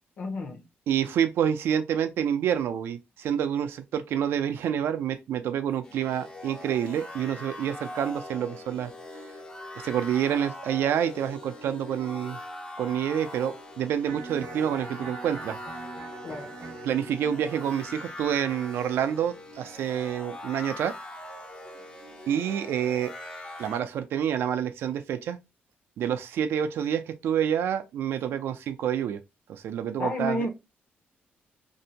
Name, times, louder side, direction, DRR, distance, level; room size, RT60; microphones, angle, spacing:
voice 1, 0.2-0.6 16.2-16.5 30.0-30.5, left 1 dB, 50° left, 0.7 m, -30 dB
voice 2, 0.9-8.9 9.8-12.4 12.8-15.6 16.8-20.9 22.3-23.1 23.6-25.4 26.0-29.2 29.5-30.5, right 9 dB, 75° right, 0.4 m, -28 dB
sound 1, 5.8-23.8, left 1 dB, 20° left, 0.4 m, -42 dB
Electric guitar, 14.0-20.1, right 4 dB, 55° right, 0.9 m, -44 dB
2.6 x 2.1 x 2.7 m
cardioid pair, 150°, 4 cm